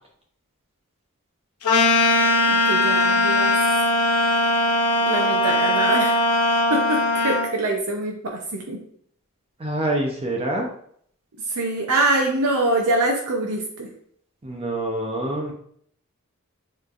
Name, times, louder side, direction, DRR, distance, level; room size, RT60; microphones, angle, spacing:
sound 1, 1.6-7.5, left 2 dB, 80° left, 0.8 m, -20 dB
voice 1, 2.5-3.5 5.0-6.3 6.7-8.8 11.4-13.9, right 2 dB, 75° right, 0 dB, 0.7 m, -24 dB
voice 2, 9.6-10.7 14.4-15.5, right 1 dB, 25° right, 0 dB, 0.6 m, -26 dB
6.8 x 3.2 x 2.4 m, 0.64 s
head